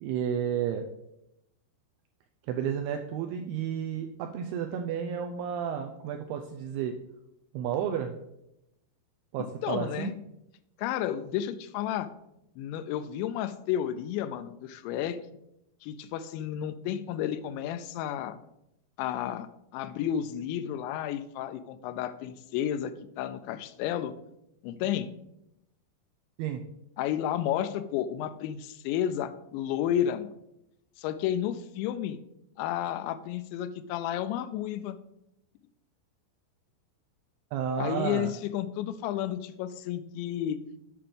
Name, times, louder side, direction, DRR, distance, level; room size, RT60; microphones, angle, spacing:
voice 1, 0.0-0.8 2.5-6.9 7.5-8.1 9.3-10.1 26.4-26.6 37.5-38.3, right 8 dB, 85° right, 4 dB, 2.3 m, -31 dB
voice 2, 9.6-10.1 10.8-12.1 12.6-15.2 15.8-18.4 19.0-19.5 19.7-22.9 23.2-24.1 24.6-25.1 27.0-30.3 31.0-32.2 32.6-35.0 37.8-40.6, left 10 dB, 85° left, 12 dB, 2.9 m, -31 dB
8.5 x 5.8 x 5.1 m, 0.84 s
omnidirectional pair, 5.1 m